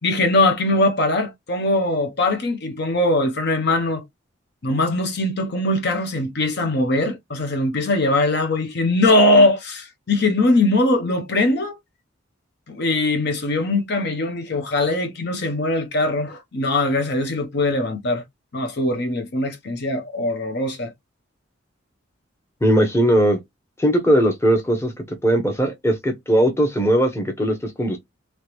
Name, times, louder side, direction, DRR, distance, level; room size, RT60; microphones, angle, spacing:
voice 1, 0.0-4.0 4.6-11.8 12.7-18.2 18.5-20.9, left 2 dB, 55° left, 0.7 m, -21 dB
voice 2, 22.6-23.4 23.8-24.9 25.2-28.0, right 1 dB, 15° left, 0.8 m, -19 dB
3.3 x 3.0 x 3.0 m
head